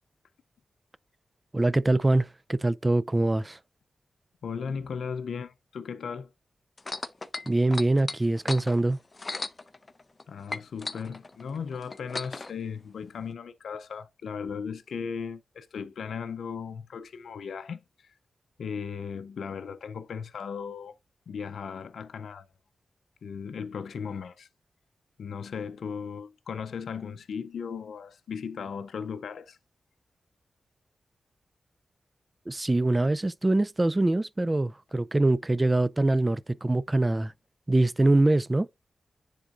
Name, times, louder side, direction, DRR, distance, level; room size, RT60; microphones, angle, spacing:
voice 1, 1.5-3.6 7.5-9.0 32.5-37.3 37.7-38.7, right 2 dB, 25° right, 0.4 m, -24 dB
voice 2, 4.4-6.3 10.3-18.1 18.6-21.0 21.3-22.5 23.2-24.5 25.2-29.6, left 6 dB, 85° left, 0.5 m, -37 dB
sound 1, 6.8-10.2 10.5-12.5 13.3-13.4, left 3 dB, 35° left, 0.7 m, -36 dB
10.0 x 3.7 x 2.5 m
cardioid pair, 60°, 0 cm